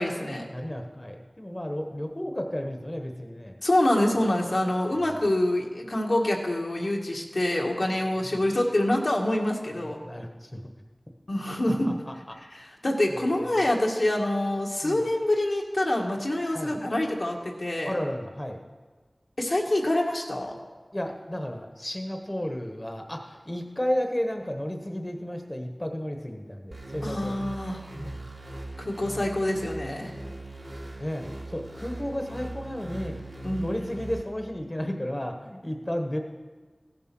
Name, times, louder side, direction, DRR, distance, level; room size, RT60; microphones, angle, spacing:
voice 1, 0.0-0.4 3.6-10.0 11.3-12.0 12.5-17.9 19.4-20.5 27.0-27.8 28.8-30.1 33.4-33.7, left 1 dB, 70° left, -1 dB, 1.7 m, -26 dB
voice 2, 0.5-3.6 8.2-8.4 9.8-10.6 11.9-12.1 13.1-13.5 14.8-15.0 16.5-16.8 17.8-18.6 20.9-27.4 27.9-28.2 31.0-33.2 33.6-36.2, equal, 25° left, 3 dB, 1.2 m, -33 dB
sound 1, 26.7-34.2, right 1 dB, 75° right, 2.8 m, -40 dB
15.0 x 7.7 x 6.1 m, 1.4 s
wide cardioid pair, 45°, 0 cm